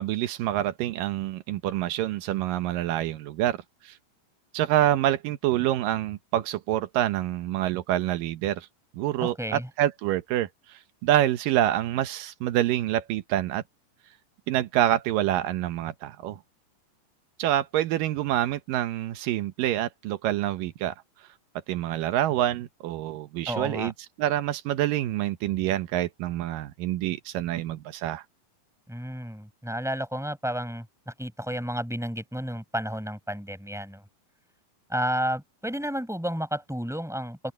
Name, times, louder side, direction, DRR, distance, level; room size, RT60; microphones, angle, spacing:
voice 1, 0.0-3.6 3.8-3.9 4.5-8.7 8.9-13.6 14.5-16.4 17.4-20.9 21.7-23.9 24.2-28.2, right 13 dB, 85° right, 2.6 m, -27 dB
voice 2, 9.2-9.7 23.5-23.9 28.9-34.0 34.9-37.5, equal, ahead, 7.4 m, -31 dB
open air
omnidirectional pair, 3.8 m